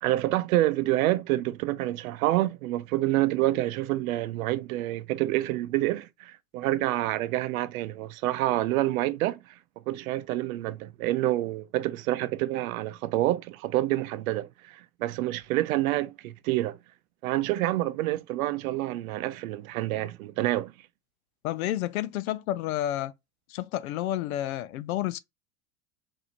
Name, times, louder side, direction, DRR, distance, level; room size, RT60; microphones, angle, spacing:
voice 1, 0.0-9.6 9.9-16.8 17.2-20.7, right 16 dB, 75° right, 0.6 m, -27 dB
voice 2, 21.4-23.1 23.5-25.2, left 13 dB, 80° left, 0.6 m, -30 dB
4.1 x 2.7 x 2.9 m
hypercardioid pair, 95°, 42 cm